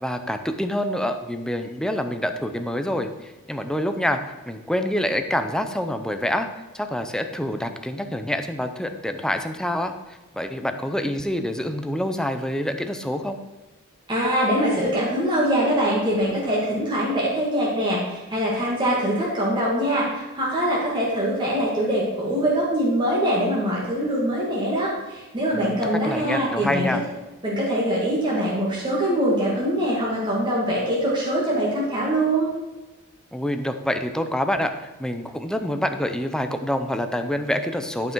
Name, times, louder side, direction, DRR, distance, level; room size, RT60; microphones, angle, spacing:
voice 1, 0.0-6.5 6.7-13.4 25.5-27.0 33.3-38.1, left 1 dB, 5° left, 7 dB, 0.6 m, -27 dB
voice 2, 14.1-26.9 27.4-32.5, right 1 dB, 20° right, -6 dB, 1.9 m, -23 dB
11.5 x 5.6 x 4.6 m, 1.2 s
head